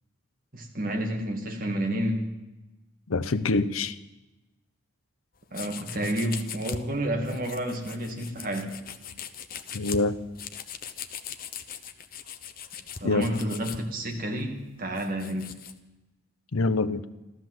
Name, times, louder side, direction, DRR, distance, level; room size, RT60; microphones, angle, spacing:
voice 1, 0.5-2.3 5.5-8.8 13.0-15.5, right 1 dB, 40° right, 2 dB, 2.2 m, -30 dB
voice 2, 3.1-4.0 9.7-10.2 13.0-13.3 16.5-17.0, left 3 dB, 80° left, 14 dB, 0.8 m, -25 dB
sound 1, 5.5-6.8 7.2-13.8 14.4-15.8, left 7 dB, 45° left, 0.9 m, -40 dB
14.5 x 13.0 x 7.7 m, 1.0 s
head